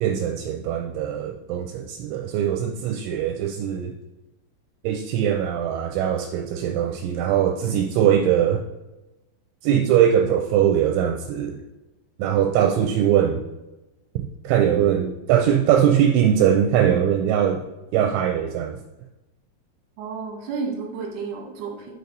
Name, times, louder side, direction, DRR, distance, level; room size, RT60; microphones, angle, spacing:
voice 1, 0.0-3.9 4.8-8.7 9.6-11.6 12.2-13.4 14.2-17.7 17.9-18.8, right 9 dB, 85° right, 4 dB, 2.8 m, -21 dB
voice 2, 20.0-21.9, right 5 dB, 60° right, 0 dB, 2.4 m, -31 dB
6.7 x 6.4 x 4.0 m, 1.0 s
omnidirectional pair, 5.6 m